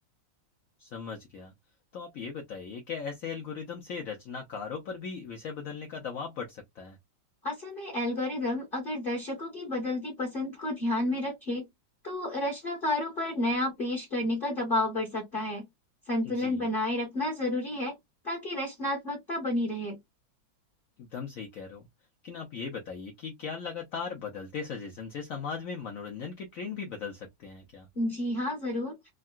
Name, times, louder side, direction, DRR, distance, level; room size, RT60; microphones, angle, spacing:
voice 1, 0.8-1.5 1.9-7.0 16.2-16.7 21.0-21.9 22.2-27.9, left 6 dB, 75° left, 0.7 m, -38 dB
voice 2, 7.4-11.7 12.0-15.7 16.1-17.9 18.2-20.0 27.9-29.0, left 1 dB, 30° left, 1.1 m, -31 dB
3.6 x 2.2 x 2.4 m
omnidirectional pair, 2.1 m